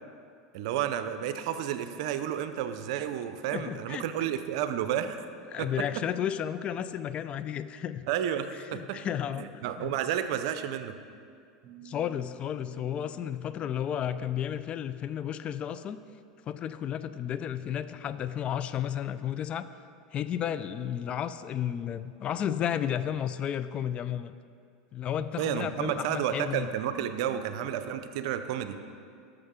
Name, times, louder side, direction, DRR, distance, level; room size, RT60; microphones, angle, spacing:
voice 1, 0.5-5.2 5.6-5.7 8.1-9.0 9.4-10.9 25.4-28.8, right 10 dB, 70° right, 10 dB, 0.6 m, -31 dB
voice 2, 3.5-4.0 5.5-8.1 8.7-9.5 9.8-9.9 11.8-16.0 16.5-19.7 20.1-24.3 24.9-26.7, left 9 dB, 35° left, 12 dB, 0.4 m, -32 dB
sound 1, 11.6-14.8, right 7 dB, 40° right, 1.8 m, -54 dB
11.5 x 6.8 x 3.7 m, 2.2 s
hypercardioid pair, 100°, 3 cm